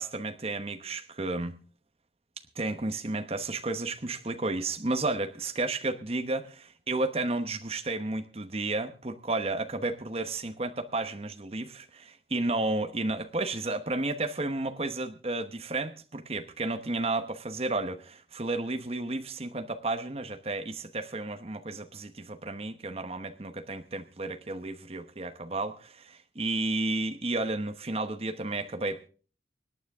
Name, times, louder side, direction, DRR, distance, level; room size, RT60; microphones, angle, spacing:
voice 1, 0.0-1.6 2.5-25.7 26.0-29.1, right 2 dB, 35° right, 6 dB, 1.0 m, -32 dB
25.5 x 9.3 x 3.6 m, 0.39 s
head